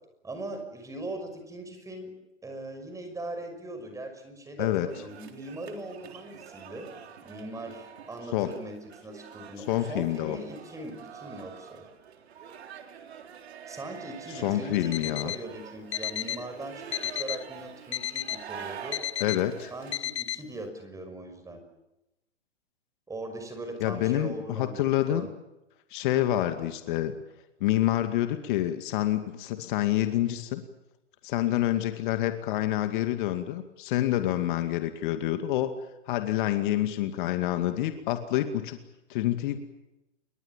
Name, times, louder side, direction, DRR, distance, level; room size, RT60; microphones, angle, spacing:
voice 1, 0.2-2.1 2.4-6.9 7.2-8.7 9.0-11.8 13.7-16.8 17.1-19.0 19.7-21.6 23.1-25.3, right 1 dB, 10° right, 6 dB, 5.9 m, -40 dB
sound 1, 4.9-20.0, right 8 dB, 60° right, 3.7 m, -46 dB
voice 2, 9.6-10.4 14.3-15.3 19.2-19.7 23.8-25.3 25.9-27.2 27.6-30.6 31.2-35.7 36.1-38.8 39.1-39.6, left 13 dB, 45° left, 8 dB, 2.3 m, -27 dB
Alarm, 14.7-15.4 15.9-16.4 16.9-17.4 17.9-18.4 18.9-19.4 19.9-20.4, left 10 dB, 65° left, 1.3 m, -33 dB
29.0 x 23.0 x 7.4 m, 0.95 s
hypercardioid pair, 125°, 35 cm